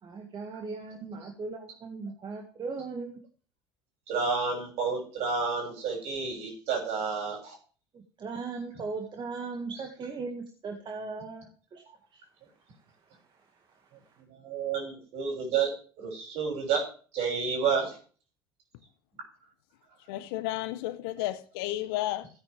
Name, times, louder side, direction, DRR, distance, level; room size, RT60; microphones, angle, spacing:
voice 1, 0.0-3.2 7.9-11.8 12.1-12.2 13.3-13.4, right 4 dB, 35° right, 2.0 m, -38 dB
voice 2, 4.1-7.6 14.3-15.7 16.0-16.8 17.1-18.0, right 5 dB, 55° right, 6.9 m, -30 dB
voice 3, 20.1-22.3, left 15 dB, 65° left, 1.0 m, -32 dB
16.5 x 9.7 x 3.5 m
figure-of-eight pair, 65°, 13 cm